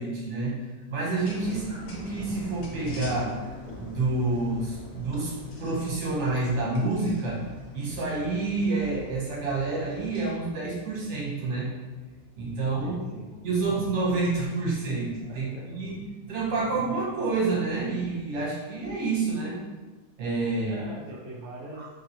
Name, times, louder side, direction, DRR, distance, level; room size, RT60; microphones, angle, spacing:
voice 1, 0.0-3.4 3.8-11.7 12.3-13.0 13.4-15.5 15.7-19.6 20.2-20.8 21.7-21.8, right 3 dB, 50° right, -5 dB, 0.9 m, -28 dB
sound 1, 1.1-10.3, left 3 dB, 70° left, 1.0 m, -47 dB
sound 2, 1.1-15.1 15.6-16.3, left 1 dB, 35° left, 0.3 m, -47 dB
voice 2, 12.8-13.3 13.6-13.7 15.3-15.7 20.6-21.9, right 2 dB, 80° right, -3 dB, 0.6 m, -42 dB
2.8 x 2.6 x 2.7 m, 1.3 s
omnidirectional pair, 1.9 m